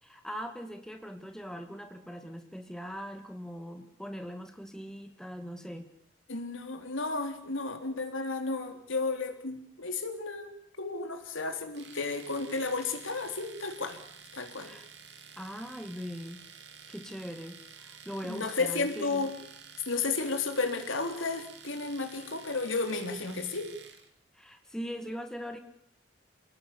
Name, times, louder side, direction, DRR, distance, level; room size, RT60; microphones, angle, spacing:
voice 1, 0.0-5.9 14.6-14.9 15.4-16.4 16.9-19.3 24.3-25.6, equal, 5° left, 6 dB, 2.0 m, -41 dB
voice 2, 6.3-10.5 10.8-14.0 14.3-14.7 18.2-19.3 19.9-23.7, left 3 dB, 90° left, 6 dB, 3.7 m, -33 dB
Domestic sounds home sounds, 11.7-24.1, right 6 dB, 60° right, 3.4 m, -51 dB
28.0 x 18.0 x 8.7 m, 0.70 s
head